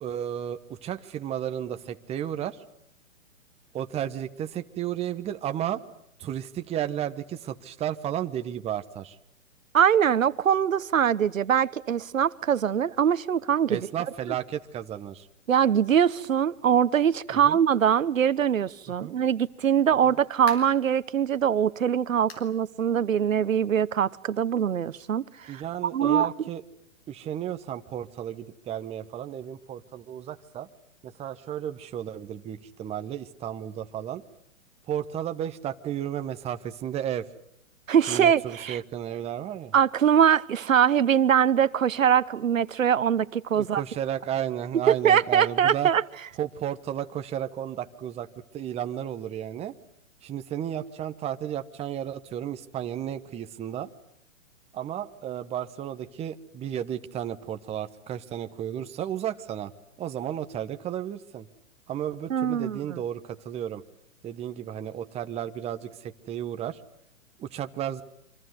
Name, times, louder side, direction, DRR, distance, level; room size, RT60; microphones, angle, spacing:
voice 1, 0.0-2.6 3.7-5.8 6.2-9.2 13.7-15.3 17.3-17.6 19.0-19.2 20.1-20.2 25.5-26.6 27.1-30.7 31.0-34.2 34.9-37.3 38.1-39.7 43.5-45.9 46.4-48.3 48.5-49.7 50.2-53.9 54.7-59.7 60.0-61.5 61.9-63.8 64.2-66.8 67.4-68.0, right 10 dB, 15° right, 8 dB, 1.1 m, -33 dB
voice 2, 9.7-13.9 15.5-25.6 25.9-26.3 37.9-38.8 39.7-43.8 45.0-46.0 62.3-62.8, right 8 dB, 75° right, 17 dB, 1.1 m, -23 dB
sound 1, 20.5-20.9 21.4-21.5 22.3-22.6 22.9-23.0 23.5-23.6 24.7-24.8, left 4 dB, 40° left, 6.4 m, -43 dB
28.0 x 25.5 x 8.1 m, 0.74 s
hypercardioid pair, 130°, 40 cm